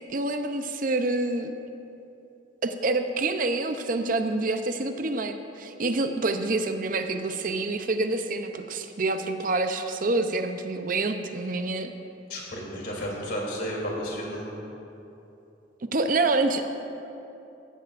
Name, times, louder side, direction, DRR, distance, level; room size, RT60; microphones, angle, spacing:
voice 1, 0.1-1.6 2.6-11.9 15.9-16.6, right 2 dB, 50° right, 7 dB, 0.7 m, -27 dB
voice 2, 12.3-14.5, equal, 60° left, -3 dB, 3.2 m, -32 dB
16.5 x 16.0 x 2.5 m, 2.9 s
head